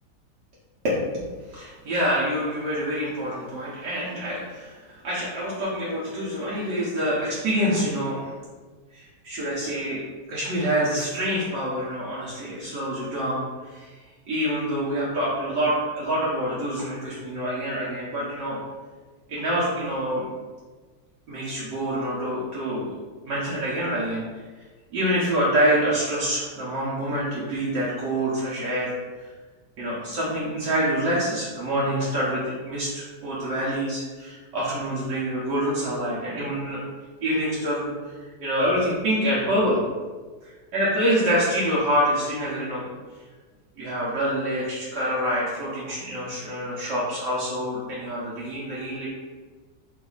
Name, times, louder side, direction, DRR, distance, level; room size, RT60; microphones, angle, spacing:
voice 1, 0.8-1.2 1.5-8.4 8.9-10.0 10.3-13.9 14.3-18.6 19.3-20.3 21.3-22.9 23.2-24.3 24.9-28.9 29.2-29.3 29.8-36.8 37.2-37.9 38.4-39.8 40.7-42.9 43.8-49.1, equal, 70° right, -8 dB, 1.4 m, -26 dB
3.9 x 2.6 x 3.8 m, 1.4 s
omnidirectional pair, 1.9 m